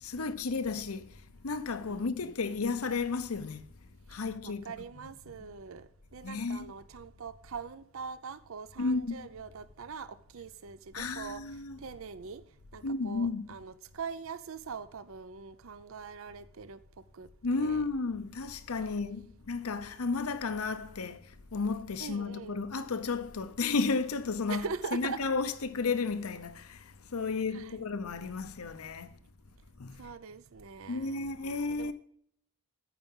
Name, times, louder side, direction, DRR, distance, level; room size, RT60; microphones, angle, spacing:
voice 1, 0.0-1.1 1.4-3.6 4.1-4.6 6.2-6.7 8.8-9.3 10.9-11.8 12.8-13.5 17.4-21.2 21.5-24.6 24.9-26.8 27.1-29.1 29.8-30.0 30.9-31.9, left 4 dB, 85° left, 0.8 m, -33 dB
voice 2, 1.9-2.3 4.4-11.4 11.8-12.4 12.7-16.8 17.1-17.3 17.5-17.8 22.0-22.6 24.5-25.2 27.5-27.8 30.0-31.9, right 5 dB, 70° right, 0.5 m, -42 dB
14.0 x 4.8 x 5.4 m
head